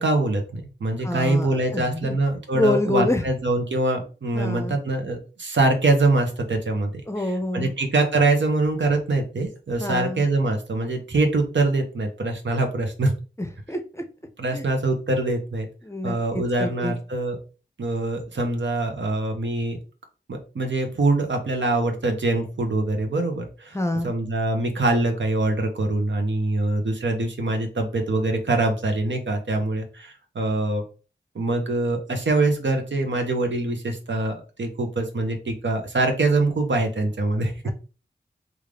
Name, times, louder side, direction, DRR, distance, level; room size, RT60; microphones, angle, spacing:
voice 1, 0.0-13.1 14.4-15.7 16.0-17.4 17.8-19.8 20.3-23.8 24.0-30.8 31.3-37.5, right 2 dB, 75° right, 4 dB, 0.8 m, -24 dB
voice 2, 1.0-2.2 2.5-3.2 4.3-4.8 7.1-7.7 9.8-10.2 13.4-14.0 14.5-14.7 15.8-16.9 23.7-24.1 37.6-37.7, left 1 dB, 15° left, 6 dB, 0.6 m, -27 dB
3.6 x 2.5 x 3.3 m, 0.35 s
wide cardioid pair, 50°, 19 cm